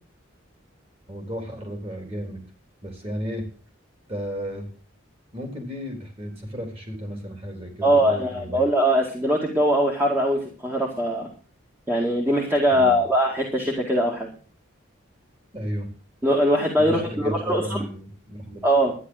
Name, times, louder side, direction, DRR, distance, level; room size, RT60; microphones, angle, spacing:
voice 1, 1.1-2.4 2.8-3.5 4.1-4.7 5.3-8.6 12.7-13.0 15.5-15.9 16.8-18.6, equal, 30° right, 3 dB, 4.0 m, -33 dB
voice 2, 7.8-11.3 11.9-14.3 16.2-17.9 18.6-18.9, equal, 10° right, -1 dB, 2.1 m, -21 dB
12.0 x 10.5 x 6.5 m, 0.39 s
head